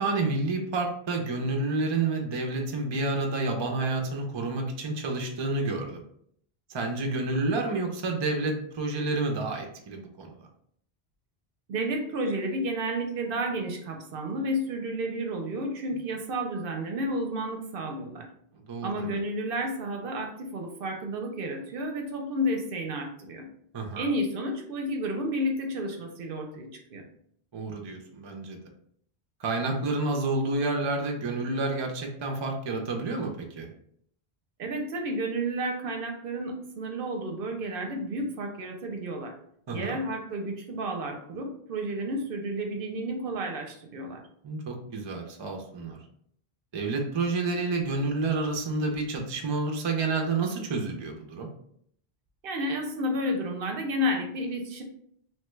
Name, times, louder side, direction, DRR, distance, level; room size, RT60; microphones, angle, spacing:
voice 1, 0.0-6.0 6.7-10.3 18.5-19.1 23.7-24.1 27.5-28.6 29.4-33.7 39.7-40.0 44.4-46.0 46.7-51.5, right 3 dB, 40° right, 2 dB, 0.4 m, -29 dB
voice 2, 11.7-18.3 18.8-23.5 24.0-27.1 34.6-39.4 39.7-44.2 52.4-54.8, equal, 65° right, 3 dB, 0.7 m, -31 dB
2.9 x 2.2 x 3.0 m, 0.66 s
omnidirectional pair, 1.0 m